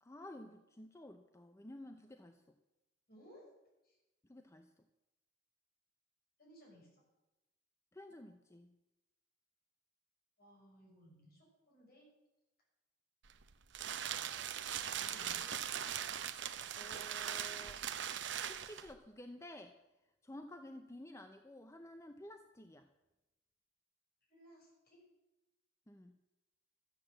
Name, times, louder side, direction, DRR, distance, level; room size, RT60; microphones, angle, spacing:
voice 1, 0.0-2.5 4.3-4.7 7.9-8.8 16.7-17.8 18.5-19.8 20.2-22.9 25.9-26.2, left 1 dB, 15° left, 7 dB, 0.6 m, -52 dB
voice 2, 3.1-3.4 3.8-4.0 6.4-6.9 10.4-12.1 14.5-15.5 24.3-25.0, equal, 50° left, -3 dB, 6.0 m, -61 dB
sound 1, 13.2-18.9, right 9 dB, 65° right, 0.7 m, -40 dB
13.0 x 8.3 x 7.5 m, 1.0 s
head